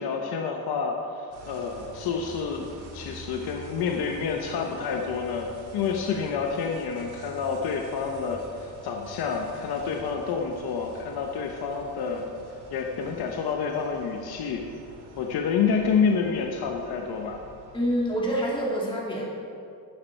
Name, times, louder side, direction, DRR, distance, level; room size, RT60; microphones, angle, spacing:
voice 1, 0.0-2.7 2.9-12.3 12.7-14.6 15.2-17.4, left 5 dB, 70° left, 2 dB, 1.0 m, -28 dB
sound 1, 1.3-18.6, right 2 dB, 80° right, 2.4 m, -47 dB
voice 2, 17.7-19.2, equal, 15° left, -4 dB, 2.2 m, -26 dB
11.5 x 9.6 x 4.5 m, 2.4 s
cardioid pair, 155°, 39 cm